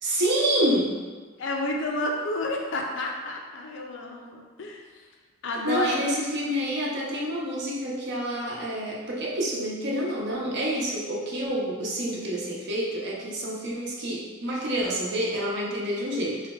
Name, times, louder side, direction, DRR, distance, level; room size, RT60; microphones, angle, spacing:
voice 1, 0.0-0.9 5.6-16.4, right 1 dB, 55° right, -4 dB, 0.8 m, -28 dB
voice 2, 1.4-4.8 5.4-6.0, left 2 dB, 60° left, 1 dB, 0.5 m, -30 dB
3.2 x 2.3 x 4.1 m, 1.4 s
head